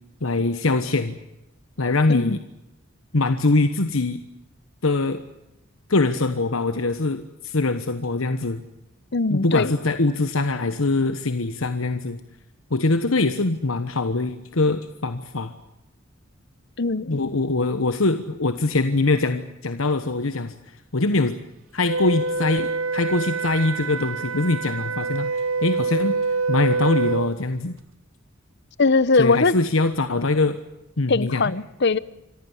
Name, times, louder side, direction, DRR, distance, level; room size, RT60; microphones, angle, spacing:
voice 1, 0.2-1.2 1.8-2.4 3.1-4.2 4.8-5.2 5.9-8.6 9.3-12.2 12.7-15.5 17.1-21.3 21.7-26.2 26.5-27.8 29.2-30.6 31.0-31.4, left 2 dB, 85° left, 9 dB, 1.2 m, -23 dB
voice 2, 9.1-9.7 16.8-17.2 28.8-29.5 31.1-32.0, left 3 dB, 55° left, 18 dB, 0.9 m, -20 dB
Wind instrument woodwind instrument, 21.8-27.3, right 4 dB, 75° right, 1.1 m, -26 dB
26.5 x 15.0 x 9.9 m, 0.90 s
head